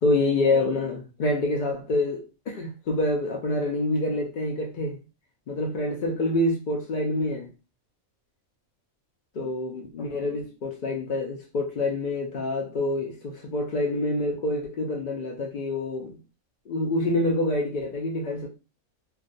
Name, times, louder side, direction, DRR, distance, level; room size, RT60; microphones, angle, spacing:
voice 1, 0.0-5.0 5.5-7.5 9.4-16.2 16.7-18.5, left 2 dB, 75° left, 0.4 m, -27 dB
2.4 x 2.2 x 2.5 m
omnidirectional pair, 1.5 m